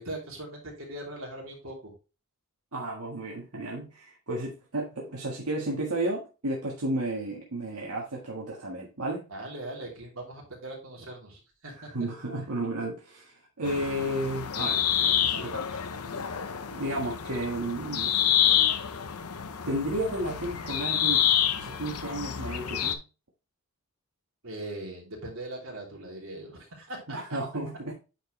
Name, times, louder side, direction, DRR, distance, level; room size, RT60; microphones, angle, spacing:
voice 1, 0.0-1.9 9.3-11.9 12.4-12.5 24.4-27.2, right 1 dB, 65° right, -2 dB, 3.1 m, -40 dB
voice 2, 2.7-9.3 11.7-15.8 16.7-18.1 19.6-21.3 21.6-23.0 27.1-28.0, right 1 dB, 90° right, -3 dB, 1.7 m, -33 dB
sound 1, 13.6-22.9, left 9 dB, 85° left, 0.8 m, -28 dB
9.1 x 4.6 x 3.2 m, 0.31 s
head